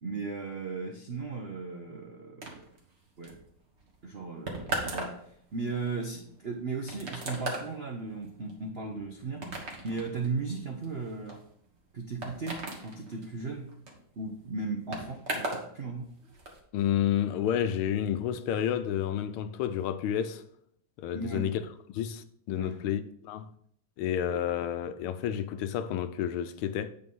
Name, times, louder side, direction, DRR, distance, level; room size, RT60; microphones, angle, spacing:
voice 1, 0.0-2.6 3.2-3.4 4.0-5.2 5.5-9.5 9.8-11.4 11.9-13.7 14.2-16.1 21.1-21.5 22.5-22.9, right 4 dB, 70° right, 0.5 m, -36 dB
sound 1, 2.4-15.7 16.0-16.6, right 2 dB, 35° right, 1.5 m, -39 dB
voice 2, 16.7-20.4 21.0-21.6 21.9-23.5 24.0-26.9, left 10 dB, 85° left, 1.5 m, -30 dB
8.7 x 4.0 x 5.4 m
omnidirectional pair, 2.3 m